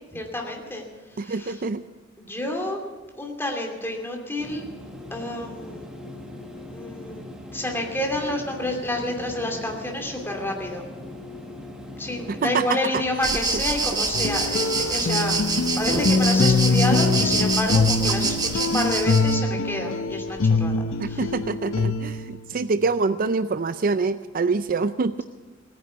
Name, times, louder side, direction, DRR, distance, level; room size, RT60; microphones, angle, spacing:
voice 1, 0.1-0.8 1.1-1.6 2.2-2.8 3.2-4.6 5.1-5.9 6.7-10.8 12.0-21.3, left 1 dB, 10° left, 1 dB, 2.6 m, -29 dB
voice 2, 1.2-1.8 12.4-12.8 21.0-25.2, right 4 dB, 45° right, 12 dB, 0.4 m, -25 dB
sound 1, 4.4-12.6, left 1 dB, 5° right, 1.4 m, -40 dB
sound 2, 13.2-19.4, right 4 dB, 20° right, 1.1 m, -26 dB
sound 3, 14.1-22.4, left 3 dB, 80° left, 0.6 m, -23 dB
17.5 x 9.7 x 8.1 m, 1.3 s
head